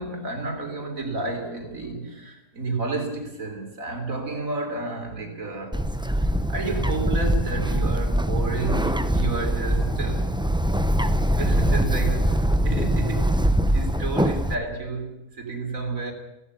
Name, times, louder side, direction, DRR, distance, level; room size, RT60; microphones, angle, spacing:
voice 1, 0.0-5.9 6.5-10.3 11.4-13.3 13.7-16.1, right 3 dB, 55° right, 3.9 m, -31 dB
Bird, 5.7-14.5, equal, 5° right, 0.6 m, -23 dB
16.5 x 16.0 x 9.8 m
omnidirectional pair, 1.7 m